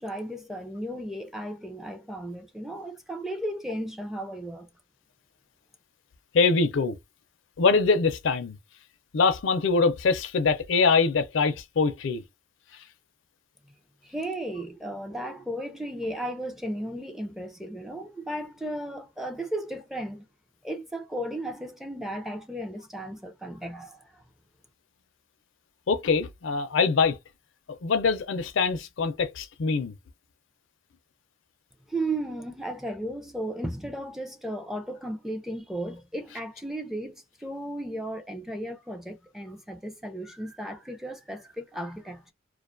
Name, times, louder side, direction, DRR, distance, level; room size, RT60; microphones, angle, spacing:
voice 1, 0.0-4.7 14.0-20.2 20.6-24.2 31.9-42.3, right 1 dB, ahead, 0.4 m, -35 dB
voice 2, 6.3-7.0 7.6-8.6 9.1-12.2 25.9-27.2 27.8-29.9, left 4 dB, 65° left, 0.5 m, -23 dB
2.5 x 2.2 x 2.4 m
head